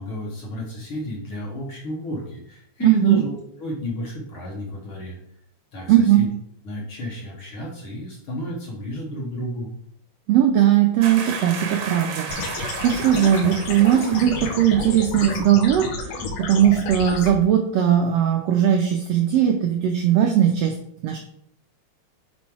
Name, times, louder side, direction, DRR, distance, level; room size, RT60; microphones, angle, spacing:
voice 1, 0.0-5.2 5.7-6.3 6.7-9.7, left 1 dB, 55° left, -2 dB, 1.7 m, -32 dB
voice 2, 2.8-3.2 5.9-6.2 10.3-20.7 21.0-21.2, right 10 dB, 85° right, 3 dB, 1.4 m, -19 dB
sound 1, 11.0-14.9 15.2-15.4, right 5 dB, 65° right, 2.0 m, -34 dB
sound 2, 12.3-17.3, left 4 dB, 70° left, 1.8 m, -31 dB
5.5 x 4.2 x 4.6 m, 0.68 s
omnidirectional pair, 3.5 m